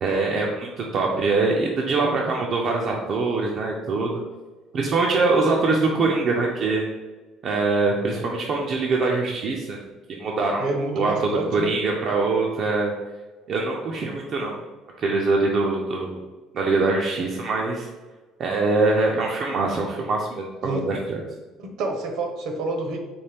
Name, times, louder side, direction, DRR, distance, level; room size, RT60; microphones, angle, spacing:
voice 1, 0.0-4.2 4.7-6.9 7.4-9.8 10.1-10.7 10.9-11.1 11.5-12.9 13.5-14.6 15.0-16.2 16.5-17.9 18.4-21.2, right 3 dB, 40° right, -1 dB, 0.4 m, -23 dB
voice 2, 10.6-11.7 20.6-20.8 21.6-23.0, right 3 dB, 60° right, 3 dB, 0.8 m, -28 dB
4.3 x 3.0 x 3.4 m, 1.3 s
cardioid pair, 160°, 0 cm